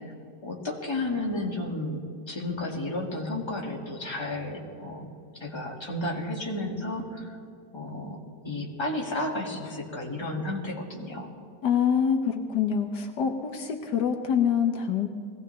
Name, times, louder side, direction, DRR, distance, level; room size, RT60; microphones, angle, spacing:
voice 1, 0.4-2.0 2.3-5.1 5.4-7.4 7.7-8.2 8.4-11.3, left 1 dB, 15° left, -2 dB, 1.9 m, -32 dB
voice 2, 11.6-15.1, left 7 dB, 75° left, 4 dB, 1.5 m, -25 dB
21.5 x 16.5 x 3.3 m, 2.4 s
omnidirectional pair, 1.9 m